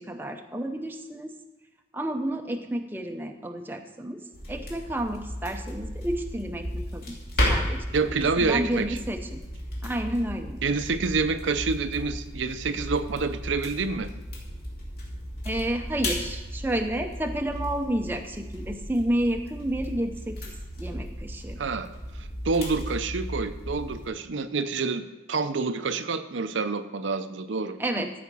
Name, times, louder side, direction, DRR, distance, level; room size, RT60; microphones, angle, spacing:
voice 1, 0.0-1.3 1.9-4.2 4.5-7.2 7.5-7.9 8.4-9.4 9.8-10.6 15.4-21.6 27.8-28.1, right 1 dB, 10° right, 4 dB, 0.6 m, -30 dB
sound 1, 4.3-24.1, left 1 dB, 55° left, 2.7 m, -34 dB
voice 2, 7.9-9.0 10.6-14.1 21.6-21.9 22.2-28.1, right 4 dB, 85° right, 9 dB, 0.6 m, -28 dB
14.0 x 5.1 x 6.1 m, 1.2 s
head